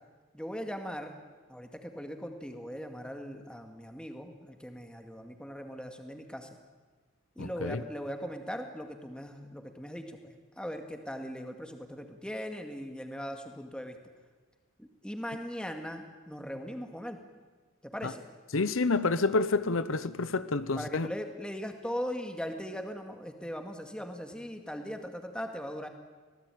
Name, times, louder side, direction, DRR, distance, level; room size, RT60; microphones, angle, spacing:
voice 1, 0.3-1.2 1.5-6.5 7.4-14.0 14.8-17.2 17.8-18.2 20.8-25.9, equal, 5° left, 2.1 m, -39 dB
voice 2, 7.4-7.8 18.0-18.1 18.5-21.1, left 3 dB, 80° left, 0.9 m, -28 dB
25.0 x 18.0 x 9.2 m
head